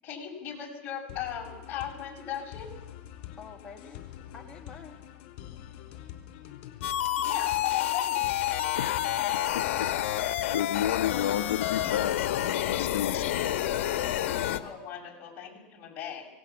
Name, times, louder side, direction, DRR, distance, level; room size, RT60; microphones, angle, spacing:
voice 1, 0.0-2.7 7.2-8.3 14.5-16.3, left 9 dB, 35° left, 0 dB, 6.9 m, -37 dB
sound 1, 1.1-12.5, left 11 dB, 55° left, 4.3 m, -46 dB
voice 2, 3.4-4.0 4.3-5.0 8.8-9.2, left 5 dB, 15° left, 0 dB, 1.7 m, -48 dB
sound 2, 6.8-14.6, left 12 dB, 70° left, 1.7 m, -29 dB
voice 3, 9.5-10.2 10.5-13.6, left 11 dB, 90° left, 9 dB, 0.9 m, -32 dB
25.5 x 18.5 x 7.2 m, 1.0 s
supercardioid pair, 140°, 7 cm